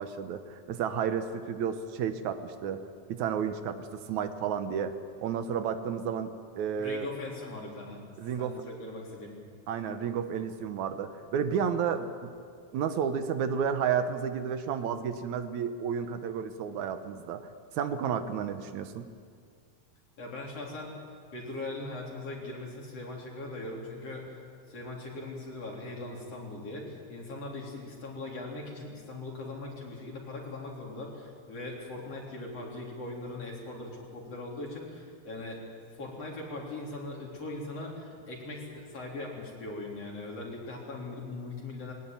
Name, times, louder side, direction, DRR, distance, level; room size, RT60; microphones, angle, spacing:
voice 1, 0.0-4.9 5.2-7.1 8.2-8.6 9.7-12.3 12.7-17.5 17.7-19.1, right 7 dB, 80° right, 9 dB, 2.5 m, -32 dB
voice 2, 6.8-8.0 8.4-9.4 20.2-20.9 21.3-24.3 24.7-35.6 35.9-41.9, left 2 dB, 55° left, -2 dB, 4.7 m, -40 dB
20.5 x 18.5 x 9.2 m, 2.1 s
omnidirectional pair, 3.3 m